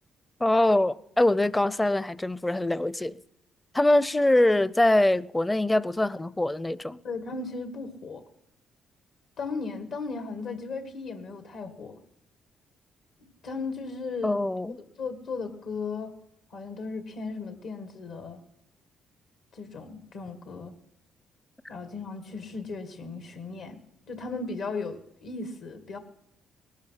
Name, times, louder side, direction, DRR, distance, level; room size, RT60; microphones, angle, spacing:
voice 1, 0.4-3.2 3.7-7.0 14.2-14.8, left 1 dB, 15° left, 0.5 m, -23 dB
voice 2, 7.0-8.2 9.4-12.0 13.4-14.4 14.7-16.1 16.5-18.4 19.5-20.7 21.7-23.8 24.1-26.0, left 4 dB, 80° left, 1.9 m, -36 dB
19.5 x 12.0 x 5.8 m
cardioid pair, 90°, 0 cm